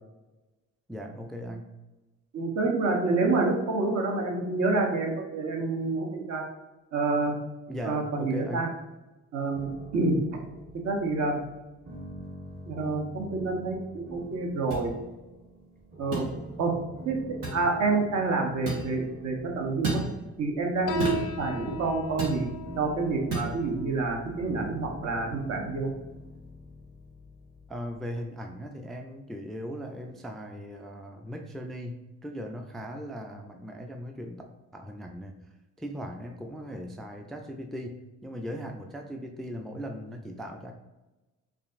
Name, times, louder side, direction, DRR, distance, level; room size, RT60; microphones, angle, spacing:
voice 1, 0.9-1.7 7.7-8.7 27.7-34.4 34.7-35.3 35.8-37.9 38.2-40.7, equal, ahead, 3 dB, 0.3 m, -38 dB
voice 2, 2.3-6.4 6.9-7.3 7.8-8.7 9.3-10.4 10.7-11.4 12.6-14.9 16.0-16.3 16.6-16.8 17.0-20.0 20.4-22.5 22.8-25.9, right 3 dB, 60° right, 1 dB, 0.9 m, -28 dB
sound 1, 9.5-28.5, right 1 dB, 30° right, 1.0 m, -46 dB
sound 2, 14.7-14.9 16.1-16.3 17.4-17.6 18.7-18.9 19.8-20.1 21.0-21.3 22.2-22.4 23.3-23.5, right 2 dB, 90° right, 1.3 m, -30 dB
Piano, 20.9-27.9, left 2 dB, 85° left, 0.5 m, -40 dB
4.9 x 2.6 x 2.5 m, 1.1 s
cardioid pair, 90°, 30 cm